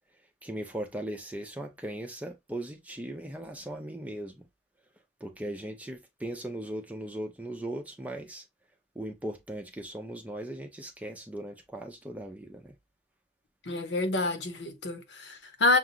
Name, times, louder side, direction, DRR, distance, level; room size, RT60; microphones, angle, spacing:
voice 1, 0.4-4.5 5.2-8.4 9.0-12.7, right 1 dB, 10° right, 0.6 m, -38 dB
voice 2, 13.7-15.8, left 2 dB, 70° left, 1.1 m, -27 dB
6.6 x 2.5 x 2.7 m
head